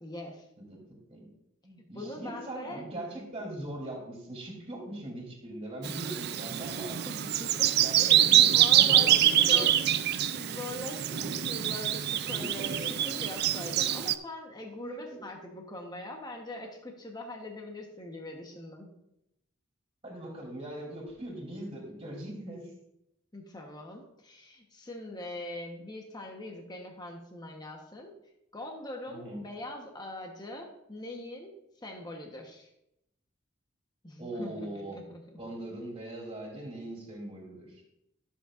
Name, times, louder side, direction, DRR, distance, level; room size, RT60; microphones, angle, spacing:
voice 1, 0.0-0.4 1.9-2.8 7.1-9.7 10.3-18.9 23.3-28.1 28.5-31.5 31.8-32.7 34.0-35.2, left 1 dB, 20° left, 2 dB, 1.1 m, -42 dB
voice 2, 1.6-7.0 7.6-9.7 11.1-11.4 12.3-13.2 14.8-15.2 20.0-22.7 29.1-29.4 34.2-35.0 35.4-37.8, right 1 dB, 30° right, -2 dB, 3.1 m, -41 dB
Bird vocalization bird call bird song, 5.8-14.2, right 11 dB, 50° right, 0.4 m, -25 dB
13.5 x 7.4 x 2.6 m, 0.83 s
head